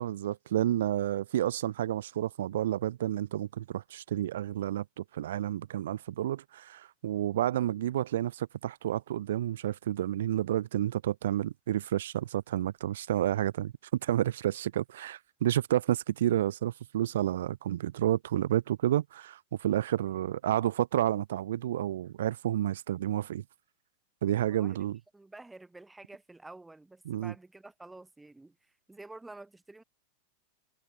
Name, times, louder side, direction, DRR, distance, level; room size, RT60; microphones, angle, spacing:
voice 1, 0.0-13.7 14.0-23.4 24.2-25.0 27.1-27.3, right 12 dB, 85° right, 0.6 m, -30 dB
voice 2, 25.1-29.8, right 2 dB, 5° right, 2.4 m, -50 dB
supercardioid pair, 160°, 0 cm